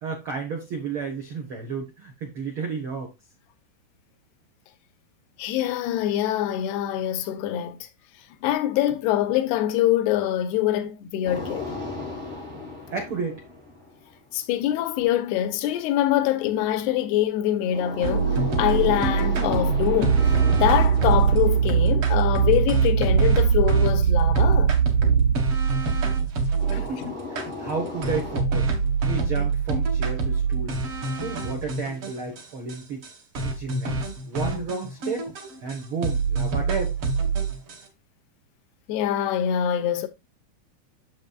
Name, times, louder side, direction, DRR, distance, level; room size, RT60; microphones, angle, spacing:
voice 1, 0.0-3.1 12.9-13.4 26.7-28.7 29.1-30.8 31.2-33.1 33.4-35.3 35.6-36.9, right 5 dB, 75° right, 1.2 m, -32 dB
voice 2, 5.4-7.9 8.4-11.7 14.3-24.8 26.7-27.1 38.9-40.1, left 12 dB, 85° left, 2.9 m, -24 dB
sound 1, 11.2-14.3 17.7-23.1 26.6-28.4, left 3 dB, 15° right, 1.1 m, -36 dB
sound 2, 18.0-26.9 27.4-27.5 28.0-32.4 32.7-32.8 33.0-33.1 33.3-35.8 36.0-37.8, right 6 dB, 50° right, 1.8 m, -22 dB
9.0 x 7.4 x 2.4 m
omnidirectional pair, 4.6 m